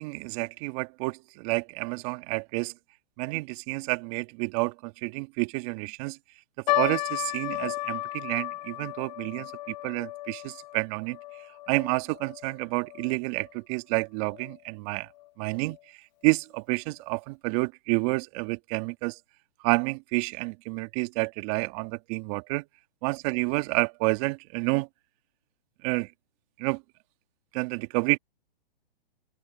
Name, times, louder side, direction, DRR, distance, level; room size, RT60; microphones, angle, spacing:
voice 1, 0.0-2.7 3.2-6.2 6.7-11.2 11.7-15.1 15.4-19.2 19.6-22.6 23.0-24.9 25.8-26.1 26.6-26.8 27.5-28.2, right 28 dB, 35° right, 2.0 m, -29 dB
sound 1, 6.7-13.2 13.4-13.5 14.3-14.6 15.2-15.3 15.6-15.8, left 18 dB, 45° left, 1.5 m, -34 dB
open air
hypercardioid pair, 135°, 30 cm